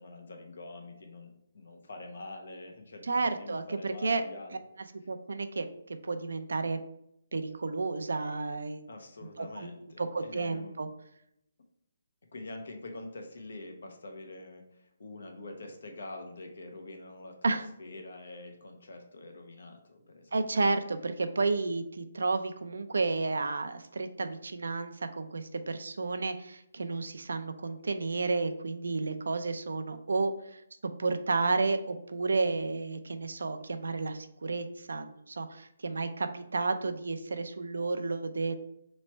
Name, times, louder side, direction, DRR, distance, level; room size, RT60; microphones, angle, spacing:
voice 1, 0.0-4.6 5.0-5.1 8.9-10.8 12.3-20.5, left 2 dB, 75° left, 3 dB, 0.9 m, -45 dB
voice 2, 3.1-4.2 5.1-6.8 7.3-8.9 9.4-9.7 10.0-10.9 17.4-17.7 20.3-38.5, right 3 dB, 85° right, 8 dB, 0.4 m, -32 dB
3.1 x 3.1 x 4.4 m, 0.76 s
hypercardioid pair, 160°, 0 cm